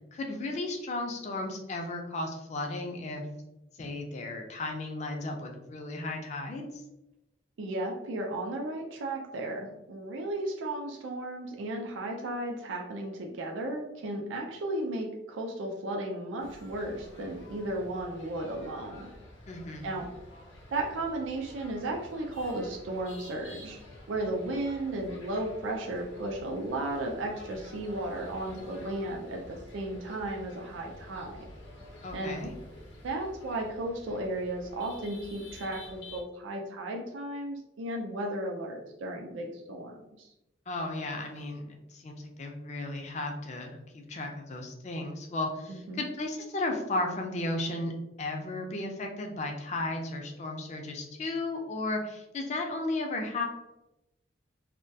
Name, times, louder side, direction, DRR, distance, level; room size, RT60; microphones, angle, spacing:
voice 1, 0.1-3.2 3.8-6.7 19.5-19.9 32.0-32.5 40.7-47.9 48.2-53.4, left 2 dB, 40° left, 3 dB, 0.3 m, -34 dB
voice 2, 7.6-19.1 19.8-20.1 20.7-23.8 24.1-31.4 32.1-32.4 33.0-40.3 45.9-46.0, right 1 dB, 85° right, 1 dB, 0.4 m, -34 dB
sound 1, 16.4-36.2, left 1 dB, 80° left, 0.6 m, -49 dB
2.2 x 2.1 x 2.6 m, 0.92 s
head